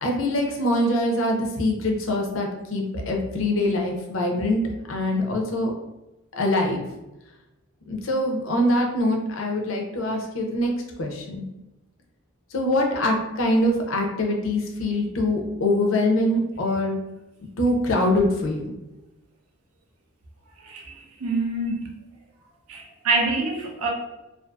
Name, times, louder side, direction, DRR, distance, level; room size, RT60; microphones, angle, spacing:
voice 1, 0.0-5.7 6.3-6.9 7.9-10.7 11.0-11.4 12.5-17.0 17.6-18.7, left 1 dB, 65° left, 1 dB, 0.5 m, -24 dB
voice 2, 20.6-22.0 22.7-23.9, right 3 dB, 85° right, 1 dB, 0.5 m, -26 dB
2.5 x 2.3 x 2.3 m, 0.98 s
head